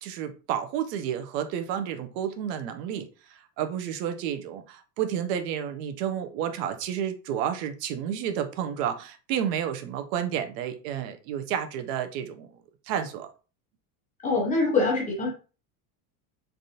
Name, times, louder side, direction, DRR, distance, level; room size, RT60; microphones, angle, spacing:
voice 1, 0.0-12.5 12.9-13.3, right 9 dB, 85° right, 0.7 m, -31 dB
voice 2, 14.2-15.3, left 3 dB, 15° left, 0.5 m, -24 dB
3.4 x 2.5 x 2.7 m
cardioid pair, 170°, 47 cm